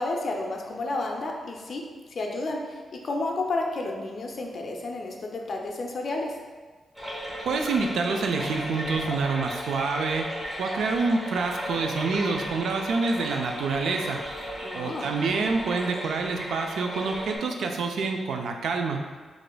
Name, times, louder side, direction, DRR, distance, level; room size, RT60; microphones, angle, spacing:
voice 1, 0.0-1.8 2.1-2.8 3.0-6.3 14.6-15.1, left 2 dB, 50° left, 1 dB, 0.4 m, -31 dB
sound 1, 6.9-17.4, equal, 15° right, 0.9 m, -35 dB
voice 2, 7.5-10.3 10.6-14.2 14.7-19.0, right 4 dB, 85° right, 3 dB, 0.3 m, -27 dB
4.9 x 2.4 x 2.2 m, 1.4 s
wide cardioid pair, 135°, 0 cm